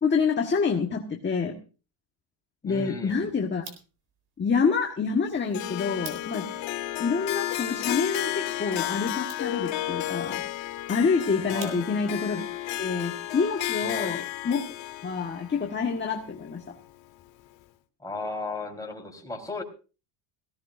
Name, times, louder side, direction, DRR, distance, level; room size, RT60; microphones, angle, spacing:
voice 1, 0.0-1.5 2.6-3.6 4.4-6.5 7.0-10.4 10.9-12.4 12.8-14.6 15.0-16.8, left 5 dB, 20° left, 3 dB, 1.5 m, -27 dB
voice 2, 2.6-3.3 11.4-11.8 13.8-14.1 18.0-19.6, left 2 dB, 5° left, 0 dB, 4.2 m, -35 dB
sound 1, 3.5-12.2, right 5 dB, 50° right, 4.2 m, -51 dB
Harp, 5.5-16.8, left 14 dB, 65° left, 1.3 m, -33 dB
19.0 x 16.5 x 2.6 m, 0.34 s
cardioid pair, 130°, 48 cm